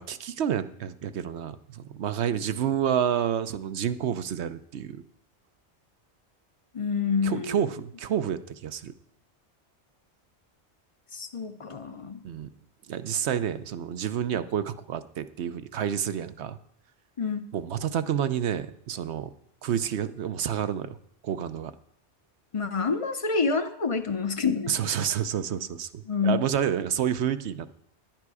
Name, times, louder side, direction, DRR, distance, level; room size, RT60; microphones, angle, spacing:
voice 1, 0.0-5.0 7.2-8.9 12.2-12.5 12.9-16.6 17.5-19.3 19.6-21.0 21.2-21.7 24.7-27.8, right 9 dB, 75° right, 12 dB, 1.0 m, -29 dB
voice 2, 6.7-7.6 11.1-12.2 17.2-17.5 22.5-24.8 26.1-26.4, left 5 dB, 35° left, 10 dB, 0.6 m, -27 dB
10.5 x 10.5 x 4.8 m, 0.72 s
omnidirectional pair, 1.2 m